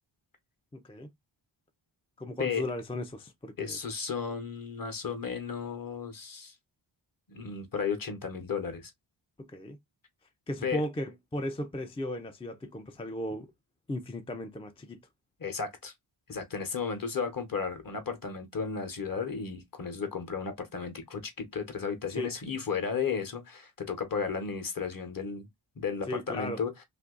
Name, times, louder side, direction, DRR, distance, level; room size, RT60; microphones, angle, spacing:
voice 1, 0.7-1.1 2.2-3.8 9.4-9.8 10.5-13.5 13.9-15.0 22.1-22.3 26.1-26.6, left 1 dB, 15° left, 0.3 m, -36 dB
voice 2, 3.6-6.5 7.3-8.9 10.6-10.8 15.4-15.9 16.3-25.5 25.8-26.7, left 6 dB, 45° left, 0.9 m, -34 dB
2.7 x 2.6 x 3.7 m
wide cardioid pair, 130°, 48 cm